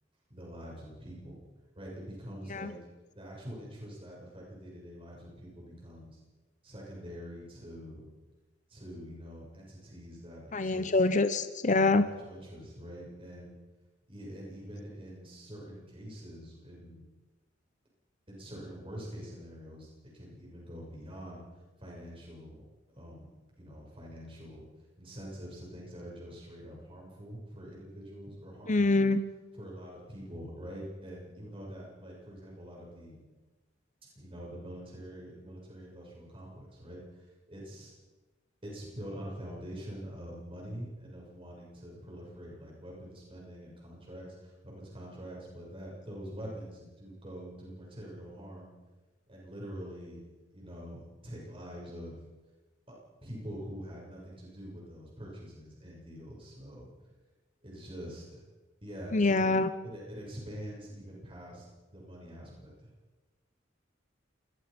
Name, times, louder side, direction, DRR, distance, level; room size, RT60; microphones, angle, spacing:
voice 1, 0.3-1.4 1.8-2.8 3.2-6.2 6.6-8.1 8.7-11.0 11.9-13.6 14.1-17.0 18.3-21.5 21.8-22.6 23.0-24.7 25.0-28.9 29.5-33.2 34.1-37.0 37.5-37.9 38.6-48.7 49.3-50.2 50.5-52.2 52.9-53.0 53.2-56.9 57.6-58.4 58.8-59.5 59.8-62.9, equal, 30° right, -3 dB, 7.4 m, -45 dB
voice 2, 10.5-12.0 28.7-29.2 59.1-59.7, left 3 dB, 40° left, 11 dB, 1.0 m, -25 dB
27.5 x 21.5 x 5.4 m, 1.2 s
head